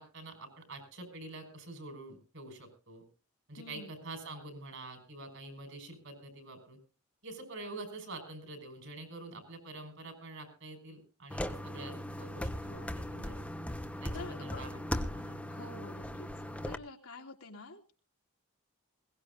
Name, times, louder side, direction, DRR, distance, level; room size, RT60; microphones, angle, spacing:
voice 1, 0.0-3.0 3.5-6.8 7.2-13.4 14.0-14.8 15.1-15.4, right 2 dB, 60° right, 6 dB, 5.5 m, -46 dB
voice 2, 3.6-4.0 12.7-13.0 14.1-14.6 15.5-16.3 16.6-17.9, left 3 dB, 75° left, 0 dB, 3.1 m, -48 dB
sound 1, 11.3-16.7, equal, 5° left, 1.1 m, -38 dB
21.5 x 18.0 x 2.6 m, 0.35 s
head